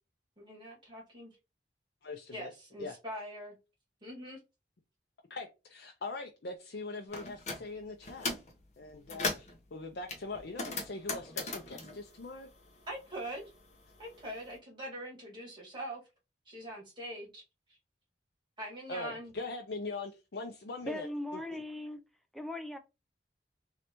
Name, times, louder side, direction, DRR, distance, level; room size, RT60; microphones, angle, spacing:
voice 1, 0.4-1.4 2.3-3.6 4.0-4.4 12.9-13.5 14.0-16.0 16.5-17.4 18.6-19.3, right 1 dB, 25° right, 1.9 m, -43 dB
voice 2, 2.0-2.5 2.8-3.0 5.3-8.3 8.8-12.5 18.9-21.1 21.5-21.6, left 3 dB, 65° left, 0.6 m, -42 dB
sound 1, 7.1-7.6 8.0-8.5 8.9-9.6 10.1-13.0 13.3-14.4, left 3 dB, 40° left, 1.0 m, -38 dB
voice 3, 20.9-22.0 22.3-22.8, left 1 dB, ahead, 0.4 m, -39 dB
3.9 x 3.2 x 3.0 m
head